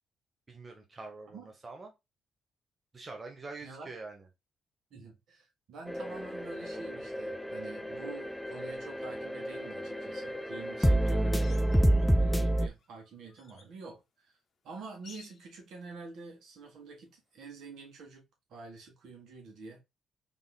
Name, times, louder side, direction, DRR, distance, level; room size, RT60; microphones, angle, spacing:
voice 1, 0.5-1.9 2.9-4.3, right 3 dB, 30° right, 1.0 m, -45 dB
voice 2, 4.9-11.9 12.2-14.4 14.6-18.2 18.5-19.8, right 4 dB, 75° right, 1.9 m, -47 dB
sound 1, 5.9-12.7, right 1 dB, 5° left, 0.3 m, -29 dB
sound 2, 11.3-12.3 12.8-13.7 15.0-15.5 17.8-17.9, left 6 dB, 55° left, 0.9 m, -56 dB
3.7 x 3.6 x 2.3 m
cardioid pair, 90°, 0 cm